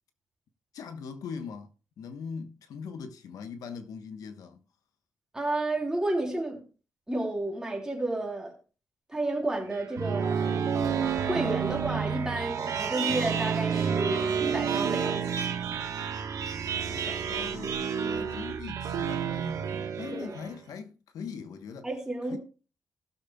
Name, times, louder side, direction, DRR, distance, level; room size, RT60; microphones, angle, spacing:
voice 1, 0.7-1.7 2.0-4.6 16.6-19.6 20.0-21.9 22.3-22.4, left 6 dB, 85° left, 1.1 m, -41 dB
voice 2, 5.3-6.6 7.1-8.5 9.1-10.4 11.3-15.3 20.1-20.4 21.8-22.4, right 2 dB, 10° right, 3.4 m, -31 dB
sound 1, 9.7-20.6, right 7 dB, 65° right, 1.3 m, -30 dB
Wind instrument woodwind instrument, 11.2-15.2, right 5 dB, 35° right, 1.7 m, -43 dB
19.5 x 6.8 x 2.3 m
cardioid pair, 125°, 6 cm